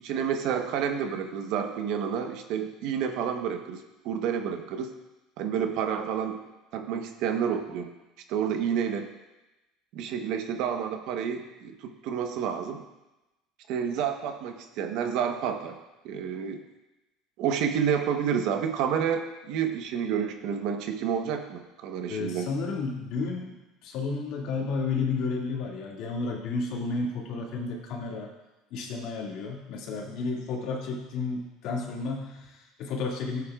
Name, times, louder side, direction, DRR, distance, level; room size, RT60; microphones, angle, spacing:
voice 1, 0.0-4.9 5.4-6.4 6.7-7.9 8.3-9.1 9.9-12.8 13.7-15.8 16.0-16.6 17.4-22.5, right 7 dB, 65° right, 5 dB, 1.0 m, -29 dB
voice 2, 22.1-28.3 28.7-33.5, left 4 dB, 60° left, -1 dB, 2.2 m, -32 dB
14.5 x 8.3 x 2.4 m, 1.0 s
supercardioid pair, 125°, 0 cm